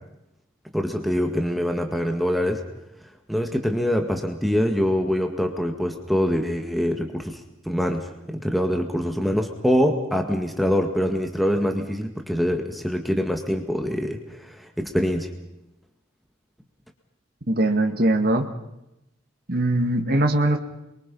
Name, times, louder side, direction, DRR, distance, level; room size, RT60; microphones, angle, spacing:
voice 1, 0.7-2.6 3.3-7.4 7.7-15.3, equal, ahead, 4 dB, 1.8 m, -24 dB
voice 2, 17.5-18.5 19.5-20.6, right 1 dB, 50° right, 3 dB, 2.1 m, -21 dB
27.5 x 23.5 x 5.5 m, 0.88 s
head